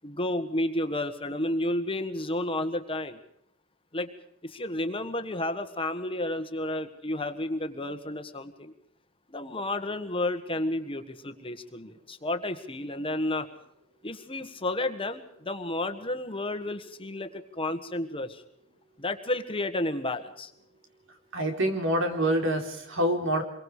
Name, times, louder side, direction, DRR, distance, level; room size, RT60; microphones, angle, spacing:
voice 1, 0.0-3.2 3.9-4.1 4.4-8.7 9.3-13.5 14.0-18.4 19.0-20.5, left 1 dB, 25° left, 8 dB, 1.6 m, -31 dB
voice 2, 21.3-23.4, right 1 dB, 65° right, 5 dB, 4.2 m, -26 dB
27.0 x 23.0 x 5.0 m, 0.70 s
head